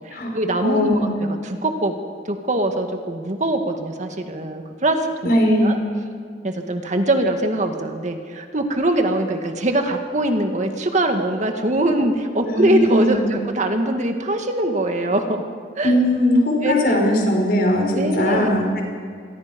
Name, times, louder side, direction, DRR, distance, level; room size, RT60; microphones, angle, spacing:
voice 1, 0.1-1.9 2.3-5.8 6.4-15.4 15.8-16.0 16.6-17.1 17.9-18.5, right 1 dB, 45° right, 5 dB, 2.0 m, -22 dB
voice 2, 0.6-1.1 5.2-5.8 12.5-13.2 15.8-18.8, left 1 dB, 60° left, 1 dB, 5.7 m, -19 dB
28.0 x 22.0 x 5.4 m, 2.2 s
head